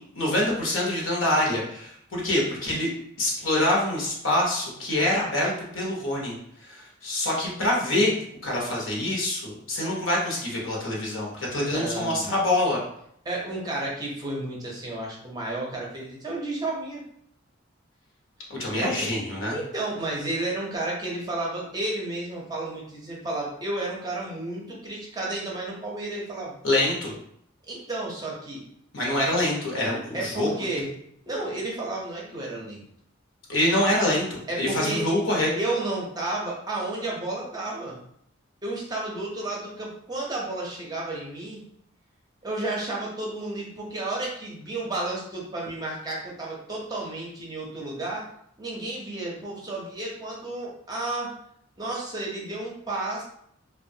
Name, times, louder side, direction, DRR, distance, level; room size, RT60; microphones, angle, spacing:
voice 1, 0.1-2.9 3.2-6.3 6.6-8.1 8.4-12.8 18.5-19.6 26.6-27.1 28.9-30.5 33.5-35.5, left 1 dB, 70° left, -2 dB, 0.8 m, -25 dB
voice 2, 11.6-12.3 13.2-17.0 18.7-19.1 19.5-26.6 27.7-28.6 30.1-30.9 31.3-32.8 34.5-35.0 35.5-38.0 38.6-41.6 42.4-48.2 48.6-51.3 51.8-53.2, right 2 dB, 20° right, -3 dB, 0.6 m, -32 dB
3.0 x 2.2 x 2.6 m, 0.70 s
head